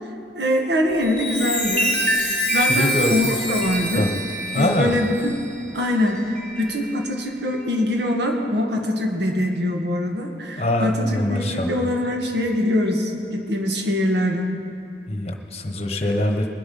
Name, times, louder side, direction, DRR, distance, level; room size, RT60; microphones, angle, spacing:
voice 1, 0.3-2.0 2.5-4.1 4.6-5.3 5.7-14.5, left 1 dB, 75° right, 2 dB, 1.6 m, -23 dB
Chime, 0.9-6.9 7.5-7.7, equal, 10° left, 3.3 m, -26 dB
voice 2, 2.6-3.4 4.0-4.1 4.5-5.0 10.6-11.8 15.1-16.5, left 1 dB, 35° left, 4 dB, 1.1 m, -23 dB
20.5 x 8.0 x 5.5 m, 2.5 s
head